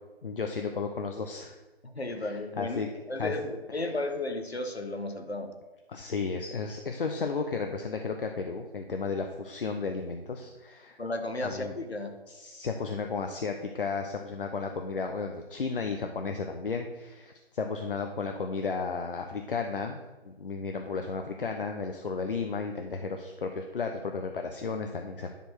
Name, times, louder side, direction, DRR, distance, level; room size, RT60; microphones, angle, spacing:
voice 1, 0.2-1.6 2.1-2.9 3.2-3.9 5.9-11.0 11.4-11.7 12.3-25.3, left 4 dB, 60° left, 4 dB, 0.9 m, -34 dB
voice 2, 1.8-2.8 3.1-5.5 11.0-12.2, left 2 dB, 85° left, 6 dB, 1.4 m, -34 dB
10.0 x 4.5 x 5.9 m, 1.2 s
figure-of-eight pair, 140°, 31 cm